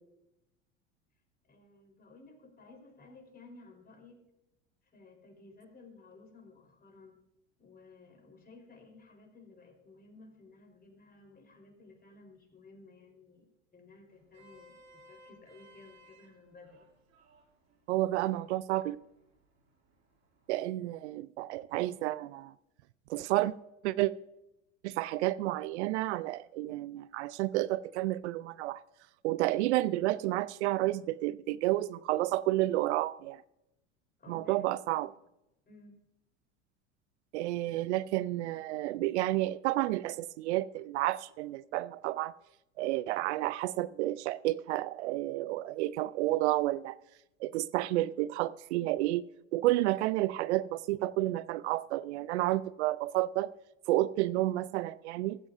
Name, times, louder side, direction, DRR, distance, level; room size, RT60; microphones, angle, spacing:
voice 1, 1.5-4.2 4.8-7.2 7.6-14.8 15.0-16.9 34.2-34.6 35.0-35.1 35.7-36.0, left 3 dB, 25° left, 3 dB, 4.1 m, -56 dB
Vehicle horn car horn honking, 14.1-20.5, right 1 dB, 45° right, 4.8 m, -62 dB
voice 2, 17.9-19.0 20.5-22.5 23.1-23.5 23.8-24.1 24.8-28.8 29.2-33.4 34.3-35.1 37.3-42.3 42.8-47.0 47.4-49.2 49.5-53.5 53.9-55.4, right 16 dB, 65° right, 18 dB, 0.5 m, -30 dB
15.0 x 14.5 x 2.6 m, 0.90 s
hypercardioid pair, 80°, 36 cm